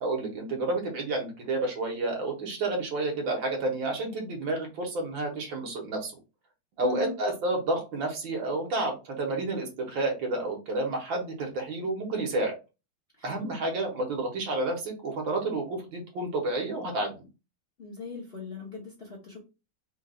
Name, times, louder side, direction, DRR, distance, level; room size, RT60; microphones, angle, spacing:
voice 1, 0.0-6.1 6.8-12.6 13.2-17.1, right 2 dB, 70° right, 1 dB, 2.0 m, -30 dB
voice 2, 6.8-7.2 13.2-13.5 17.8-19.4, left 4 dB, 35° left, -2 dB, 1.1 m, -39 dB
4.4 x 2.6 x 3.9 m, 0.28 s
omnidirectional pair, 2.3 m